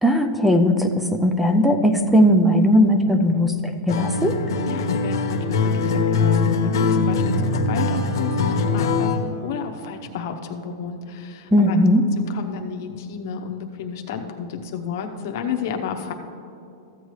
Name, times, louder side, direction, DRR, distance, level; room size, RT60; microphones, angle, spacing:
voice 1, 0.0-4.4 11.5-12.0, equal, ahead, 7 dB, 0.4 m, -18 dB
Acoustic guitar, 3.9-9.3, left 4 dB, 90° left, 1.0 m, -22 dB
voice 2, 4.7-11.8 12.2-16.1, left 7 dB, 45° left, 4 dB, 0.8 m, -32 dB
14.0 x 8.2 x 3.2 m, 2.7 s
supercardioid pair, 180°, 2 cm